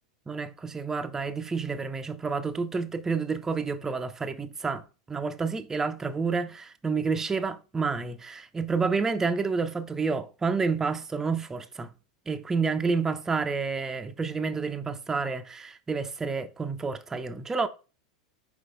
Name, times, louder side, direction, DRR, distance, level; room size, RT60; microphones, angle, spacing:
voice 1, 0.3-4.8 5.1-11.9 12.3-17.7, right 4 dB, 15° right, 0.6 m, -29 dB
5.4 x 4.7 x 3.8 m
figure-of-eight pair, 90°, 3 cm